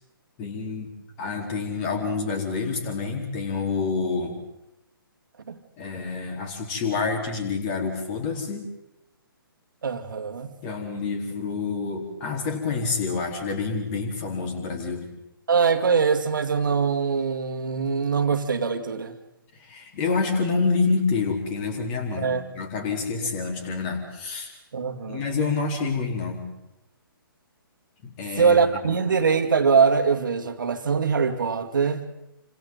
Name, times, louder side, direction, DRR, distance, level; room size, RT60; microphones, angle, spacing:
voice 1, 0.4-0.9 1.2-4.4 5.8-8.7 10.6-15.1 19.5-24.5 25.1-26.4 28.0-28.6, left 4 dB, 25° left, 3 dB, 4.2 m, -28 dB
voice 2, 9.8-10.5 15.5-19.2 22.2-22.4 23.2-23.3 24.7-25.2 28.4-32.1, right 5 dB, 60° right, 7 dB, 2.2 m, -23 dB
28.5 x 26.0 x 4.0 m, 0.90 s
figure-of-eight pair, 130°, 12 cm